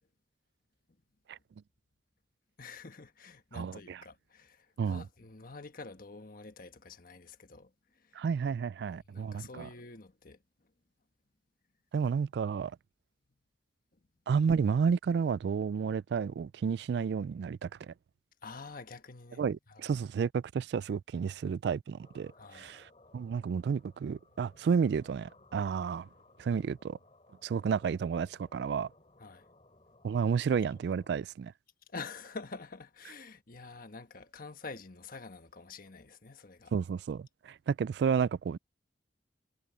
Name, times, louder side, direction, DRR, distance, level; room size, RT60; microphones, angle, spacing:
voice 1, 2.6-8.2 8.9-10.4 18.4-20.0 22.4-22.7 29.2-29.4 31.9-36.7, left 4 dB, 55° left, 1.4 m, -47 dB
voice 2, 3.5-4.0 4.8-5.0 8.2-9.7 11.9-12.7 14.3-17.9 19.4-22.9 23.1-26.1 26.4-27.0 27.4-28.9 30.0-31.5 36.7-38.6, right 6 dB, 65° right, 0.3 m, -31 dB
sound 1, 22.0-31.3, left 2 dB, 35° left, 5.1 m, -62 dB
head